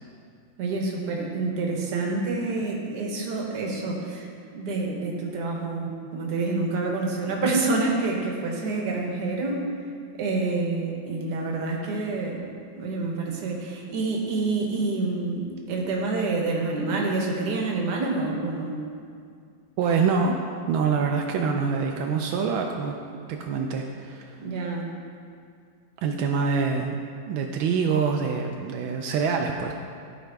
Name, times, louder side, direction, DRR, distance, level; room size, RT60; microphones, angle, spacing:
voice 1, 0.6-4.3 4.5-9.7 10.2-12.5 12.8-18.8 24.4-24.9, right 3 dB, 60° right, 0 dB, 1.6 m, -27 dB
voice 2, 19.8-20.4 20.7-23.0 23.3-24.4 26.0-27.0 27.3-29.7, right 5 dB, 85° right, 2 dB, 1.4 m, -25 dB
13.0 x 5.0 x 3.4 m, 2.2 s
omnidirectional pair, 2.2 m